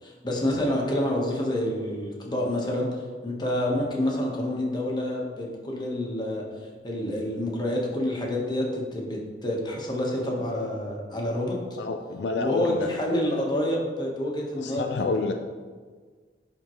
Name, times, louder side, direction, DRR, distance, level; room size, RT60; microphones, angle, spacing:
voice 1, 0.0-2.9 3.2-6.4 6.8-11.6 12.4-15.2, left 1 dB, 25° left, -1 dB, 1.1 m, -28 dB
voice 2, 11.8-12.9 14.6-15.3, left 3 dB, 70° left, 5 dB, 0.4 m, -28 dB
11.0 x 3.6 x 3.1 m, 1.5 s
head